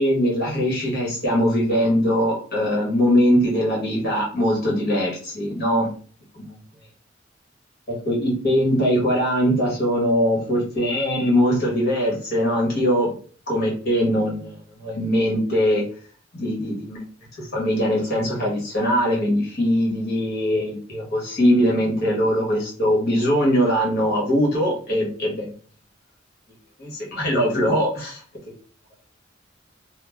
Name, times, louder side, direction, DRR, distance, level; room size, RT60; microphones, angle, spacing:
voice 1, 0.0-5.9 6.3-6.5 8.0-13.1 13.5-15.8 16.3-17.0 17.4-25.5 26.8-28.2, equal, 55° left, -3 dB, 1.5 m, -21 dB
2.9 x 2.1 x 3.4 m, 0.43 s
head